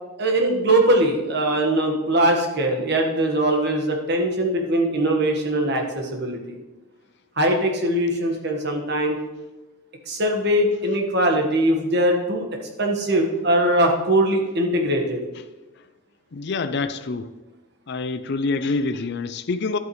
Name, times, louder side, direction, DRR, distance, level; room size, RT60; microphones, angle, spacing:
voice 1, 0.2-6.6 7.4-9.2 10.1-12.4 12.8-15.2, right 1 dB, 50° right, 2 dB, 1.5 m, -21 dB
voice 2, 16.3-17.3 17.9-19.8, left 3 dB, 50° left, 11 dB, 0.5 m, -26 dB
11.5 x 8.1 x 3.2 m, 1.1 s
head